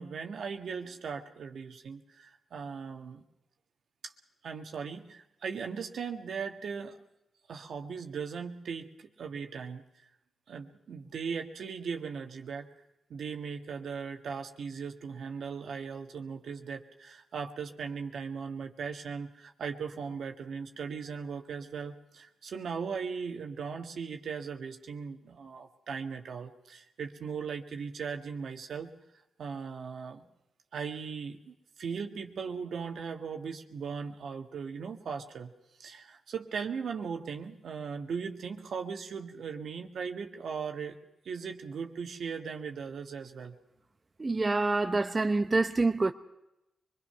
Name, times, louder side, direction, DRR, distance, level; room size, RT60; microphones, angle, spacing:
voice 1, 0.0-3.2 4.4-7.0 7.5-9.8 10.5-12.7 13.1-28.9 29.4-30.3 30.7-35.5 35.8-41.0 41.3-43.6, right 6 dB, 75° right, 1.7 m, -38 dB
voice 2, 44.2-46.1, right 3 dB, 35° right, 0.9 m, -26 dB
24.5 x 21.5 x 5.8 m
cardioid pair, 55°, 0 cm